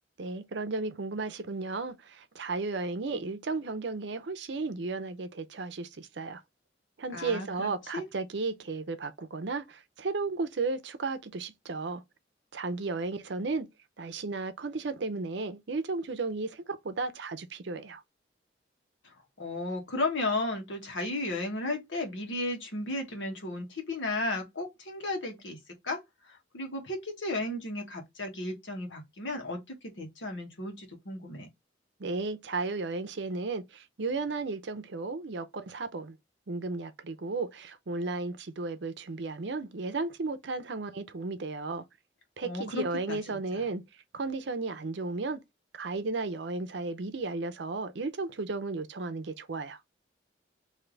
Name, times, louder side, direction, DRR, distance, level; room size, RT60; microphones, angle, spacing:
voice 1, 0.2-6.4 7.0-12.0 12.5-13.7 14.0-18.0 32.0-36.2 36.5-41.8 42.4-43.8 44.1-45.4 45.7-49.8, right 3 dB, 70° right, 0.6 m, -34 dB
voice 2, 7.1-8.0 19.0-25.6 25.8-26.0 26.2-31.5 42.4-43.6, left 2 dB, 85° left, 1.3 m, -34 dB
3.3 x 2.7 x 3.8 m
head